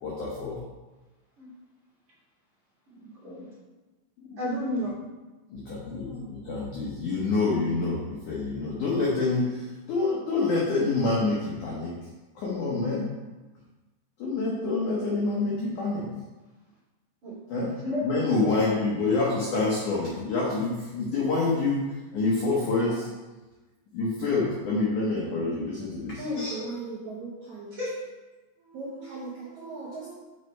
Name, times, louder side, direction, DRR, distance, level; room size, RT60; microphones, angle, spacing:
voice 1, 0.0-0.6 4.3-4.4 5.5-11.9 12.4-13.1 14.2-16.1 17.5-17.7 18.0-23.1 23.9-26.7, left 3 dB, 75° left, -5 dB, 1.9 m, -27 dB
voice 2, 2.9-3.5 4.4-4.9 17.2-18.0 27.7-27.9, left 1 dB, 30° right, -9 dB, 2.7 m, -32 dB
voice 3, 26.2-27.7 28.6-30.1, right 4 dB, 85° right, -7 dB, 1.6 m, -38 dB
6.6 x 6.5 x 4.5 m, 1.2 s
omnidirectional pair, 5.3 m